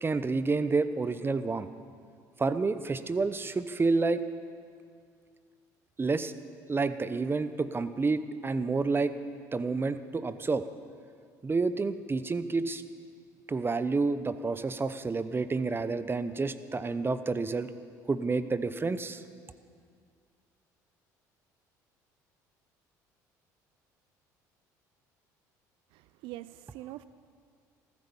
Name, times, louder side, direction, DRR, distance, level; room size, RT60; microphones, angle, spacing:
voice 1, 0.0-1.7 2.4-4.2 6.0-6.3 6.7-9.2 9.5-10.6 11.4-12.8 13.5-17.7 18.1-19.2, right 4 dB, 25° right, 13 dB, 0.8 m, -29 dB
voice 2, 25.9-27.1, right 16 dB, 70° right, 15 dB, 0.4 m, -44 dB
14.5 x 14.0 x 7.1 m, 2.2 s
hypercardioid pair, 65°, 9 cm